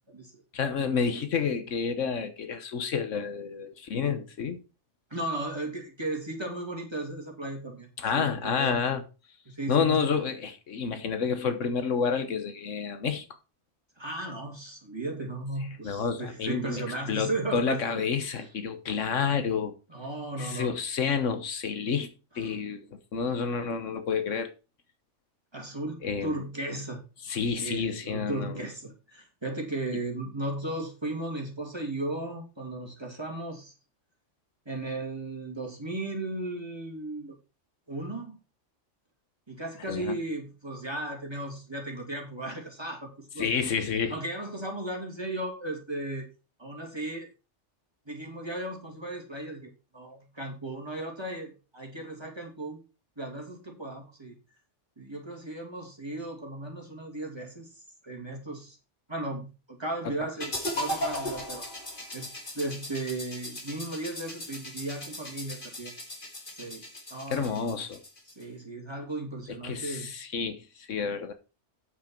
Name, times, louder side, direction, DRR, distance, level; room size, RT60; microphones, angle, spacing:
voice 1, 0.5-4.6 8.0-9.0 9.7-13.2 15.8-16.8 17.1-19.7 20.4-22.1 22.4-24.5 26.0-26.4 27.2-28.7 39.9-40.2 43.4-44.1 60.0-60.3 67.3-68.0 69.5-71.3, left 6 dB, 80° left, 1.4 m, -29 dB
voice 2, 5.1-8.8 9.5-10.1 14.0-18.1 19.9-20.8 25.5-27.0 27.6-33.7 34.7-37.4 37.9-38.4 39.5-43.5 44.1-46.3 46.6-47.3 48.1-52.8 53.2-54.3 55.0-57.7 58.0-58.8 59.1-61.7 62.1-62.3 62.5-65.9 66.5-66.8 67.1-67.5 68.3-70.1, right 2 dB, 20° right, 2.7 m, -36 dB
sound 1, 60.4-68.4, left 1 dB, 45° left, 2.4 m, -37 dB
8.6 x 7.4 x 4.5 m
omnidirectional pair, 1.3 m